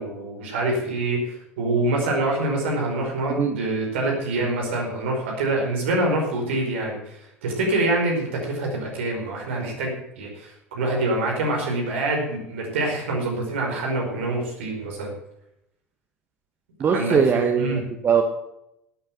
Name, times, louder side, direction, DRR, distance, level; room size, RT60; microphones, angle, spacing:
voice 1, 0.0-15.1 16.8-17.2 17.5-17.8, right 2 dB, 65° right, 0 dB, 5.0 m, -25 dB
voice 2, 16.8-18.2, right 6 dB, 30° right, 5 dB, 1.4 m, -21 dB
12.5 x 8.8 x 7.8 m, 0.82 s
figure-of-eight pair, 70°, 7 cm